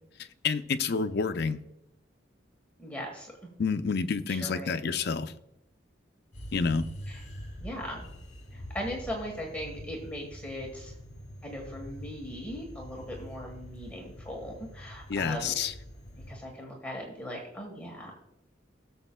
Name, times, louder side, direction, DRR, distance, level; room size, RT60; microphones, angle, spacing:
voice 1, 0.2-1.6 3.6-5.3 6.5-6.9 15.1-15.7, left 5 dB, 60° left, 0.5 m, -29 dB
voice 2, 2.8-3.3 4.3-4.7 7.6-8.1 8.5-10.9 11.4-15.6 16.3-18.1, equal, 10° left, 1.4 m, -39 dB
sound 1, 6.3-16.3, equal, 40° left, 2.6 m, -45 dB
17.0 x 7.2 x 2.3 m
head